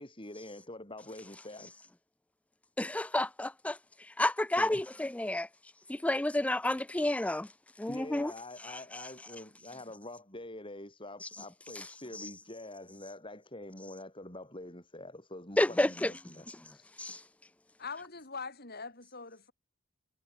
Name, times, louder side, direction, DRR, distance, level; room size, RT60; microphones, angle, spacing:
voice 1, 0.0-1.7 4.6-4.8 7.9-16.5 16.7-16.9, left 1 dB, 25° left, 6.8 m, -46 dB
voice 2, 2.8-3.8 4.2-5.5 5.9-7.5 7.8-8.3 8.9-9.1 11.8-11.9 12.1-12.3 15.6-16.1 16.5-16.6 17.0-17.2, left 1 dB, 5° left, 0.3 m, -30 dB
voice 3, 17.8-19.5, left 4 dB, 45° left, 7.0 m, -42 dB
head